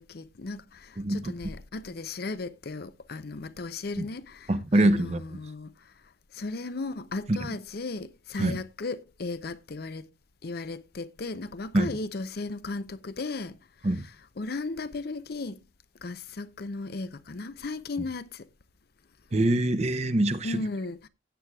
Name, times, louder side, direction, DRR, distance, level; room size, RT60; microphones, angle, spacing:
voice 1, 0.0-5.7 6.3-10.1 10.4-13.6 14.4-15.6 16.0-18.5 20.4-21.1, left 3 dB, 55° left, 0.6 m, -36 dB
voice 2, 1.0-1.3 4.0-4.1 4.5-5.2 7.3-7.4 8.4-8.6 11.7-11.9 13.8-14.0 19.3-20.6, right 1 dB, 35° right, 0.8 m, -24 dB
16.0 x 8.9 x 2.3 m
head